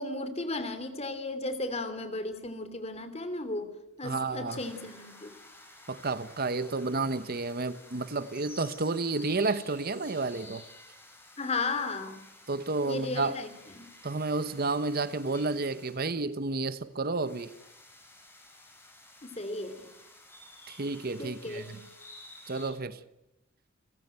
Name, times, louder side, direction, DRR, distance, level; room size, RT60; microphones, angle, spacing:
voice 1, 0.0-3.7 4.0-5.3 11.4-12.2 12.9-13.5 13.7-13.9 19.2-19.9 21.2-21.8, left 2 dB, 30° left, 2.8 m, -35 dB
voice 2, 4.0-4.6 5.9-10.6 12.5-13.4 14.0-17.5 20.7-21.8 22.5-23.0, right 3 dB, 50° right, 0.9 m, -31 dB
sound 1, 4.5-22.7, left 2 dB, 10° left, 6.6 m, -53 dB
30.0 x 15.5 x 9.1 m
head